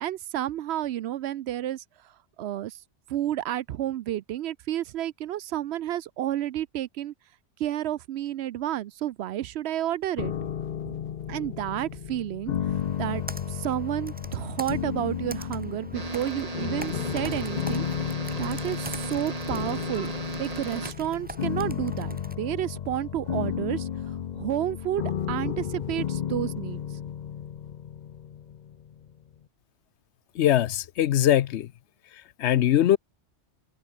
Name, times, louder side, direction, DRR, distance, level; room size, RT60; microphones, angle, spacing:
voice 1, 0.0-2.1 2.4-2.8 3.1-7.1 7.6-10.3 10.9-11.0 11.3-13.2 13.5-17.9 18.4-20.1 20.4-26.8, right 12 dB, 70° right, 0.8 m, -31 dB
sound 1, 10.2-29.1, left 9 dB, 50° left, 0.6 m, -33 dB
Computer keyboard, 12.7-22.4, right 2 dB, 10° right, 0.6 m, -44 dB
sound 2, 15.9-20.9, right 3 dB, 35° right, 2.0 m, -36 dB
voice 2, 30.4-31.7 32.4-33.0, left 11 dB, 75° left, 0.9 m, -21 dB
omnidirectional pair, 1.2 m